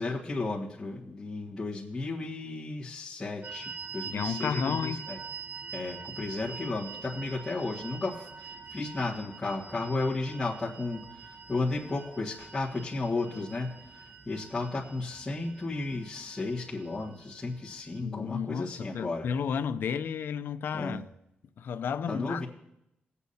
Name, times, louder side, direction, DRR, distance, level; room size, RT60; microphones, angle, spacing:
voice 1, 0.0-5.2 5.7-11.0 11.5-13.7 14.2-19.3 20.7-21.0 22.1-22.5, left 3 dB, 10° left, 1.6 m, -33 dB
sound 1, 3.4-18.0, right 6 dB, 45° right, 0.5 m, -44 dB
voice 2, 4.0-5.1 18.0-21.1 21.6-22.4, left 7 dB, 70° left, 0.5 m, -32 dB
20.5 x 8.2 x 2.8 m
wide cardioid pair, 150°, 4 cm